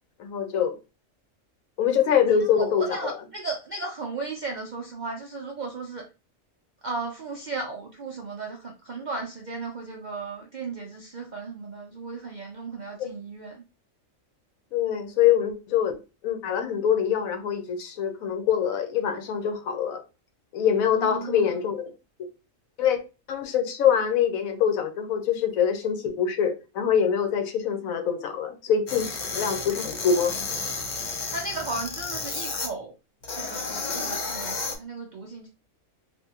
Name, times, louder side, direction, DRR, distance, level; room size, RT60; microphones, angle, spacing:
voice 1, 0.2-0.7 1.8-3.1 14.7-16.0 16.2-20.0 20.5-21.8 22.8-23.0 23.3-30.3, left 8 dB, 85° left, 1.1 m, -24 dB
voice 2, 2.4-6.1 6.8-13.6 20.9-21.6 31.3-32.9 33.4-35.5, right 3 dB, 65° right, 0.4 m, -35 dB
sound 1, 28.9-32.7 33.2-34.8, left 4 dB, 50° left, 0.5 m, -32 dB
3.4 x 2.6 x 2.8 m
omnidirectional pair, 1.4 m